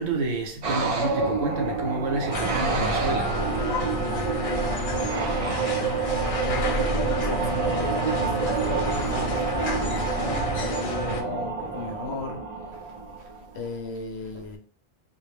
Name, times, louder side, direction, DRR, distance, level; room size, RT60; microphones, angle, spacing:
voice 1, 0.0-3.4 5.1-5.4 9.1-9.5 12.7-13.3 13.6-13.7 14.3-14.6, right 3 dB, 75° right, 0.9 m, -31 dB
sound 1, 0.6-13.6, right 4 dB, 55° right, 0.3 m, -28 dB
sound 2, 2.3-11.2, left 1 dB, 55° left, 0.4 m, -29 dB
voice 2, 6.4-12.4 13.5-14.6, left 3 dB, 75° left, 0.8 m, -36 dB
2.2 x 2.0 x 3.3 m
omnidirectional pair, 1.1 m